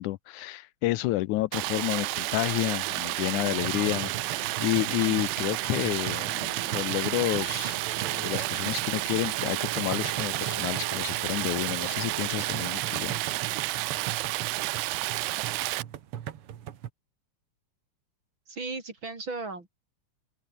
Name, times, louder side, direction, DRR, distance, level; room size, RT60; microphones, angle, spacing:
voice 1, 0.0-7.8 8.1-13.1, left 17 dB, 80° left, 2.1 m, -30 dB
Stream, 1.5-15.8, right 20 dB, 80° right, 2.0 m, -31 dB
sound 1, 3.3-12.4, right 1 dB, 20° right, 7.5 m, -46 dB
sound 2, 3.6-16.9, right 10 dB, 55° right, 2.0 m, -39 dB
voice 2, 18.5-19.7, right 3 dB, 40° right, 4.8 m, -36 dB
open air
omnidirectional pair, 3.5 m